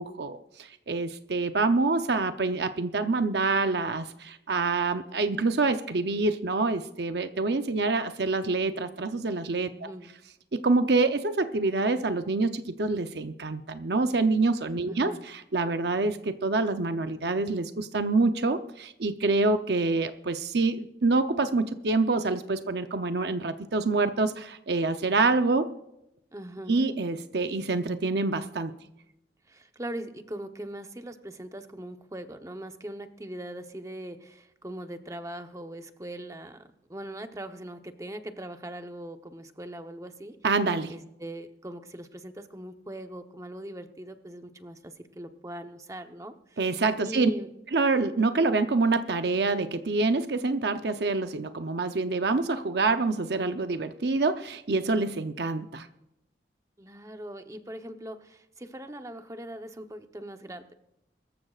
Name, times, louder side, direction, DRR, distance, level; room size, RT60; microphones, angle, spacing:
voice 1, 0.0-9.9 10.5-25.7 26.7-28.7 40.4-40.9 46.6-47.3 47.7-55.9, right 3 dB, 65° right, 8 dB, 0.7 m, -26 dB
voice 2, 26.3-26.8 29.5-36.6 36.9-40.3 40.9-44.8 45.2-46.6 47.0-47.5 56.8-60.7, right 1 dB, 20° right, 7 dB, 0.9 m, -40 dB
24.0 x 14.0 x 2.4 m, 0.86 s
head